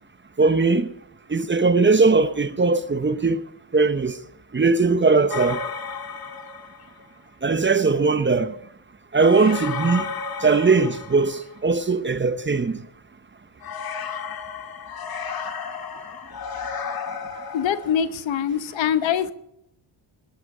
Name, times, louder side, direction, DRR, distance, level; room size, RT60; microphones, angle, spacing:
voice 1, 0.4-0.9 1.3-3.4 3.7-4.2 4.5-5.6 7.4-8.5 9.1-10.1 10.4-12.8, right 4 dB, 25° right, 1.0 m, -19 dB
sound 1, 5.3-7.0 9.1-11.7 13.6-18.0, left 5 dB, 45° left, 2.0 m, -33 dB
voice 2, 17.5-19.3, left 8 dB, 65° left, 1.2 m, -23 dB
20.0 x 11.0 x 5.0 m
cardioid pair, 75°, 48 cm